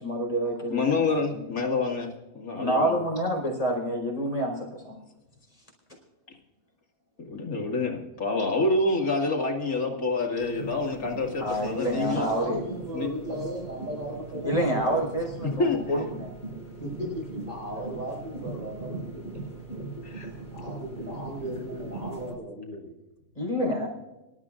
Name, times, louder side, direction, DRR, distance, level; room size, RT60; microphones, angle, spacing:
voice 1, 0.0-1.2 2.6-5.0 11.4-12.6 14.4-16.3 23.4-23.9, equal, 25° left, 0 dB, 4.5 m, -28 dB
voice 2, 0.7-2.1 2.3-3.0 7.3-12.3 12.9-13.1 15.6-15.8 20.0-20.3, left 3 dB, 80° left, 1 dB, 2.6 m, -27 dB
sound 1, 10.4-22.4, right 3 dB, 45° left, 3.4 m, -39 dB
voice 3, 12.0-15.5 16.8-19.2 20.1-22.9, right 1 dB, 60° right, -4 dB, 5.8 m, -37 dB
25.5 x 13.0 x 2.5 m, 1.0 s
omnidirectional pair, 1.5 m